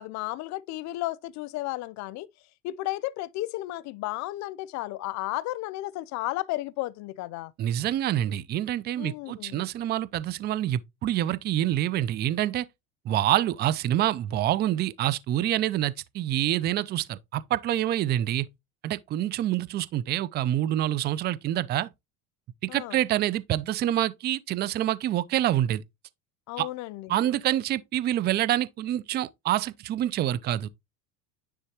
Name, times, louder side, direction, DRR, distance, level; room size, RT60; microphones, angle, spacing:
voice 1, 0.0-2.3 2.6-7.5 9.0-9.6 22.7-23.0 26.5-27.2, left 17 dB, 50° left, 0.5 m, -33 dB
voice 2, 7.6-12.7 13.1-18.5 18.8-21.9 22.6-25.8 26.6-26.7 27.1-30.7, right 12 dB, 30° right, 0.4 m, -26 dB
9.9 x 3.3 x 2.9 m
supercardioid pair, 130°, 37 cm